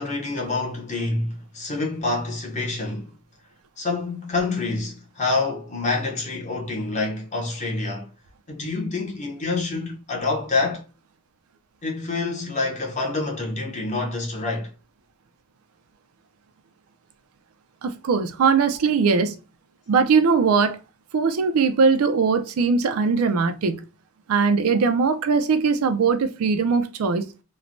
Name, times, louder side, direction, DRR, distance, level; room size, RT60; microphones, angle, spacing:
voice 1, 0.0-3.2 3.8-8.1 8.5-10.8 11.8-14.7, left 3 dB, 35° left, 0.8 m, -27 dB
voice 2, 17.8-19.3 19.9-20.8 21.1-23.8 24.3-27.3, right 5 dB, 85° right, 0.4 m, -20 dB
3.1 x 2.1 x 2.5 m
head